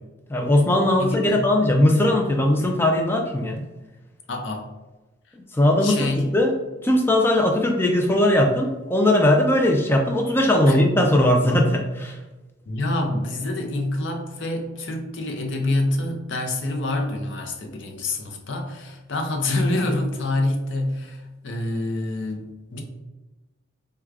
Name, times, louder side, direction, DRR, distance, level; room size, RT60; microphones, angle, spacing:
voice 1, 0.3-3.6 5.3-6.5 6.8-12.2, left 1 dB, 10° left, 2 dB, 0.3 m, -19 dB
voice 2, 1.0-1.5 4.3-4.7 5.8-6.3 10.7-10.8 12.7-22.8, left 2 dB, 60° left, 2 dB, 0.5 m, -26 dB
4.5 x 2.2 x 2.4 m, 1.1 s
head